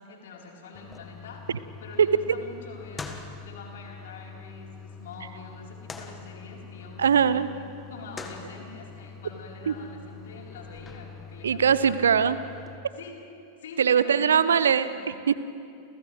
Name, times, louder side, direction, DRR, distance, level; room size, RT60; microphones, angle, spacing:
voice 1, 0.0-1.5 1.8-7.5 7.9-12.1 13.0-13.2 13.6-14.5 14.8-15.0, left 4 dB, 60° left, -1 dB, 4.1 m, -45 dB
sound 1, 0.7-12.8, left 4 dB, 15° left, 1.6 m, -44 dB
voice 2, 2.0-2.4 7.0-7.5 9.7-9.8 11.4-12.4 13.8-15.3, right 7 dB, 65° right, 15 dB, 0.7 m, -21 dB
29.5 x 29.5 x 3.3 m, 2.6 s
figure-of-eight pair, 90°, 0 cm